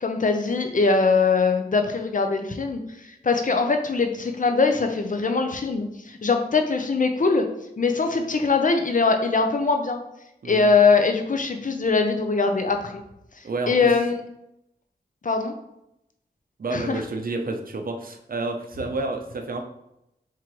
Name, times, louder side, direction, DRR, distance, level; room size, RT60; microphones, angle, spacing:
voice 1, 0.0-2.8 3.2-7.4 7.8-10.0 10.4-12.9 13.7-14.1 15.2-15.5 16.7-17.0, left 4 dB, 55° left, 5 dB, 0.6 m, -22 dB
voice 2, 10.4-10.7 13.4-13.9 16.6-19.6, right 3 dB, 60° right, 5 dB, 0.6 m, -30 dB
4.4 x 3.7 x 3.0 m, 0.85 s
cardioid pair, 55°, 17 cm